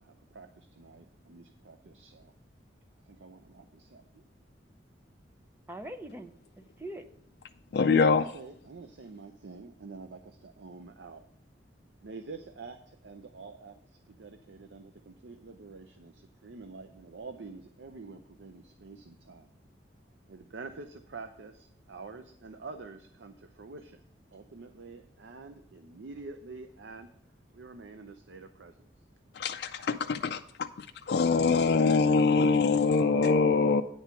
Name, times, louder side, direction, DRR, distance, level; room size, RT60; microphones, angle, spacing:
voice 1, 0.0-2.3 3.1-4.2 7.8-11.2 12.0-13.8 14.1-19.5 20.3-24.0 24.3-27.1 27.5-28.8, right 4 dB, 80° right, 0.6 m, -47 dB
voice 2, 5.7-7.0 32.9-33.8, right 2 dB, 10° right, 0.5 m, -41 dB
voice 3, 7.7-8.2 29.3-33.8, left 4 dB, 60° left, 0.3 m, -24 dB
9.5 x 4.5 x 6.9 m
head